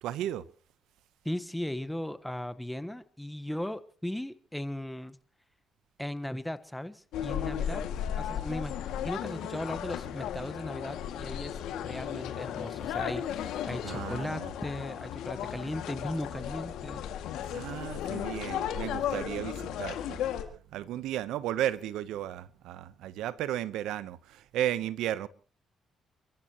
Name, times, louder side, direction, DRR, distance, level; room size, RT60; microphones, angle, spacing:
voice 1, 0.0-0.5 13.8-14.5 17.5-20.3 20.7-25.3, right 12 dB, 90° right, 0.9 m, -34 dB
voice 2, 1.2-5.2 6.0-7.9 8.1-8.7 9.0-17.0, left 1 dB, 5° left, 1.3 m, -37 dB
sound 1, 7.1-20.4, left 9 dB, 90° left, 2.2 m, -35 dB
30.0 x 14.5 x 3.0 m
cardioid pair, 90°, 0 cm